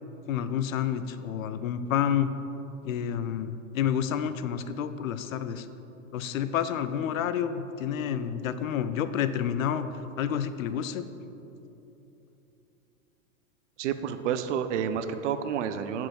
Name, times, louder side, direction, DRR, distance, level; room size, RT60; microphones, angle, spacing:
voice 1, 0.3-2.3 2.8-5.7 6.1-11.1, left 9 dB, 70° left, 12 dB, 0.5 m, -29 dB
voice 2, 13.8-16.1, right 8 dB, 60° right, 10 dB, 0.6 m, -29 dB
5.7 x 4.5 x 6.2 m, 3.0 s
hypercardioid pair, 110°, 42 cm